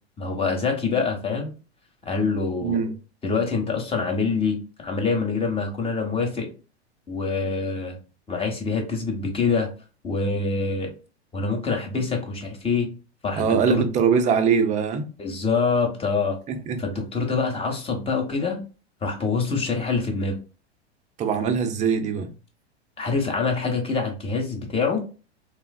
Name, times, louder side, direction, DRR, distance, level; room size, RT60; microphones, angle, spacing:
voice 1, 0.2-1.5 2.1-2.8 3.2-6.5 7.1-8.0 8.3-9.7 10.0-10.9 11.3-12.9 13.2-13.8 15.2-16.4 16.8-18.6 19.0-20.4 23.0-25.0, left 4 dB, 15° left, 0.9 m, -25 dB
voice 2, 2.6-2.9 13.4-15.1 16.5-16.8 21.2-22.3, right 6 dB, 20° right, 0.5 m, -22 dB
3.3 x 2.4 x 2.2 m
hypercardioid pair, 105°, 33 cm